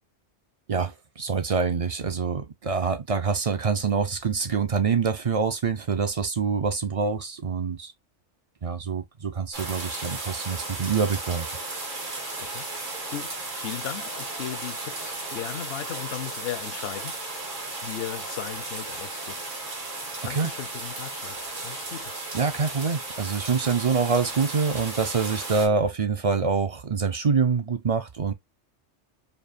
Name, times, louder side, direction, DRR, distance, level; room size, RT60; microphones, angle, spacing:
voice 1, 0.7-7.9 8.6-11.5 20.3-20.5 22.3-28.3, right 5 dB, 45° right, 0.4 m, -25 dB
sound 1, 9.5-25.7, right 2 dB, 85° right, 2.2 m, -35 dB
voice 2, 13.1-17.1 17.5-19.6 20.2-22.1, left 11 dB, 60° left, 0.8 m, -37 dB
4.6 x 2.8 x 2.4 m
omnidirectional pair, 1.3 m